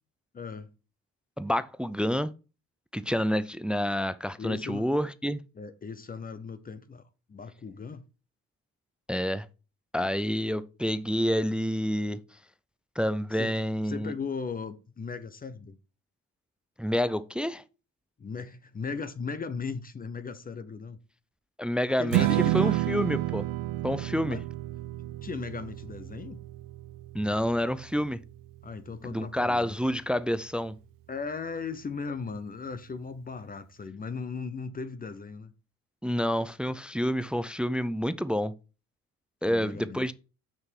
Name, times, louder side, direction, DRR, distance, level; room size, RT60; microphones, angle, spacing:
voice 1, 0.3-0.7 4.4-4.9 5.5-7.0 7.3-8.0 13.3-13.6 13.8-15.8 18.2-21.0 22.0-22.8 24.2-24.4 25.2-26.4 28.6-29.8 31.1-35.5 39.4-40.1, left 5 dB, 25° left, 0.8 m, -37 dB
voice 2, 1.4-2.3 2.9-5.4 9.1-9.5 9.9-12.2 13.0-14.1 16.8-17.6 21.6-22.3 22.5-23.5 23.8-24.4 27.1-28.2 29.0-30.8 36.0-38.5 39.4-40.1, equal, 5° right, 0.4 m, -28 dB
Strum, 22.1-28.4, right 18 dB, 90° right, 0.5 m, -30 dB
6.4 x 6.0 x 4.5 m
cardioid pair, 95°, 32 cm